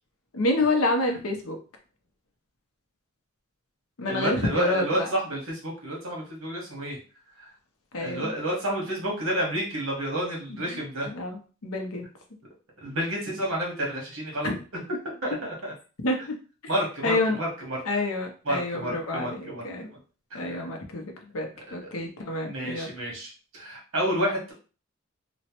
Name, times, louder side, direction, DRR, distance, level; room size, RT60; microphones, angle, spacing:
voice 1, 0.3-1.6 4.0-5.1 7.9-8.3 10.5-12.0 14.4-14.5 16.0-16.4 17.0-17.4 17.9-19.9 20.3-22.9, left 2 dB, 90° left, 3 dB, 0.7 m, -28 dB
voice 2, 4.1-7.0 8.0-11.1 12.8-14.8 15.2-15.7 16.7-17.8 18.5-19.6 20.3-20.6 21.8-22.0 22.4-24.5, right 1 dB, 70° right, -1 dB, 1.2 m, -30 dB
3.0 x 2.1 x 2.9 m, 0.36 s
head